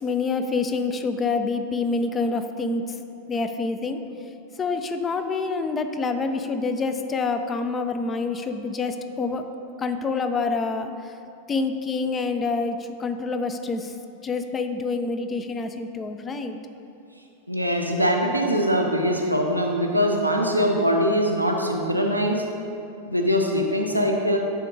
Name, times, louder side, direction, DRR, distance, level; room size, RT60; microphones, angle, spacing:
voice 1, 0.0-3.0 3.3-4.0 4.6-9.5 9.8-10.9 11.5-13.9 14.2-16.6, left 4 dB, 20° left, 8 dB, 0.4 m, -27 dB
voice 2, 17.5-22.4 23.1-24.4, equal, 90° right, 1 dB, 0.6 m, -22 dB
9.2 x 3.7 x 3.9 m, 2.6 s
figure-of-eight pair, 90°, 0 cm